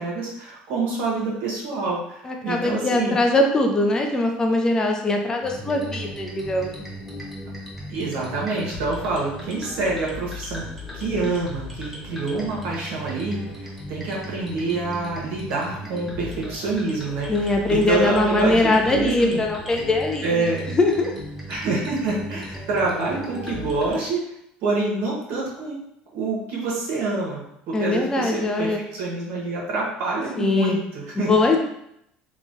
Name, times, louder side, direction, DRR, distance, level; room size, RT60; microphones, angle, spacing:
voice 1, 0.0-3.2 7.9-10.7 10.9-13.4 13.9-17.3 17.7-19.4 20.2-20.7 21.5-24.2 24.6-25.8 26.1-31.3, right 3 dB, 70° right, -3 dB, 1.0 m, -26 dB
voice 2, 2.2-6.8 17.3-21.2 27.7-28.8 30.4-30.8 31.2-31.6, left 2 dB, 20° left, 2 dB, 0.4 m, -22 dB
sound 1, 5.4-24.0, left 1 dB, 5° right, 0.8 m, -37 dB
3.0 x 2.2 x 2.6 m, 0.76 s
supercardioid pair, 110°, 3 cm